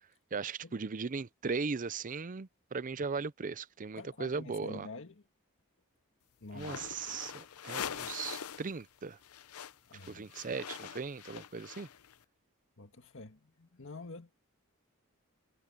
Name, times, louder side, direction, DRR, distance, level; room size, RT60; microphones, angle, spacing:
voice 1, 0.3-4.9 6.5-9.2 10.1-11.9, right 4 dB, 35° right, 0.5 m, -38 dB
voice 2, 4.0-5.3 6.4-6.8 9.9-10.3 12.8-14.3, left 3 dB, 60° left, 1.7 m, -47 dB
sound 1, 6.5-8.7 9.0-12.1, left 8 dB, 80° left, 0.7 m, -43 dB
head